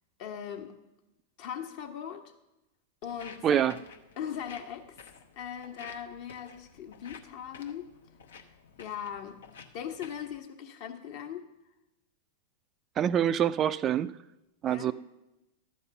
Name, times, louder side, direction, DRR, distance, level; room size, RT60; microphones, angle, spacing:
voice 1, 0.2-0.7 1.4-2.2 3.0-3.8 4.2-5.0 5.4-7.9 8.8-9.4 9.7-11.5 14.7-14.9, left 8 dB, 55° left, 5 dB, 1.2 m, -39 dB
Walk footsteps, 3.0-10.4, left 5 dB, 80° left, 0.8 m, -52 dB
voice 2, 3.4-3.8 13.0-14.2 14.6-14.9, right 9 dB, 30° right, 14 dB, 0.3 m, -25 dB
12.0 x 4.2 x 6.8 m, 0.96 s
hypercardioid pair, 100°, 0 cm